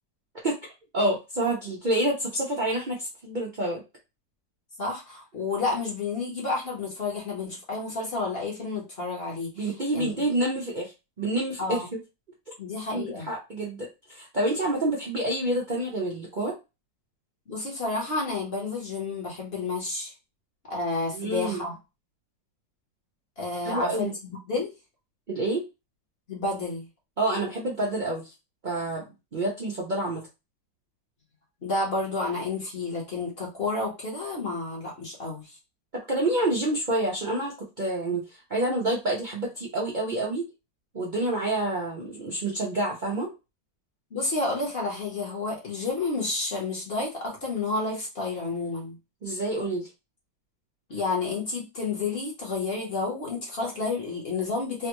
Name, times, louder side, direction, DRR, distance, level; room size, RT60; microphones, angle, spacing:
voice 1, 0.9-3.8 9.6-10.9 11.2-12.0 12.9-16.6 21.1-21.6 23.6-24.1 25.3-25.6 27.2-28.3 28.6-29.0 29.3-30.2 35.9-40.5 40.9-43.3 49.2-49.9, right 1 dB, 85° right, -3 dB, 0.4 m, -28 dB
voice 2, 4.8-10.2 11.6-11.9 12.6-13.3 17.5-20.1 20.7-21.8 23.4-24.7 26.3-26.9 31.6-35.6 44.1-48.9 50.9-54.9, left 3 dB, 40° left, -2 dB, 1.0 m, -30 dB
3.5 x 2.2 x 2.9 m, 0.26 s
omnidirectional pair, 1.9 m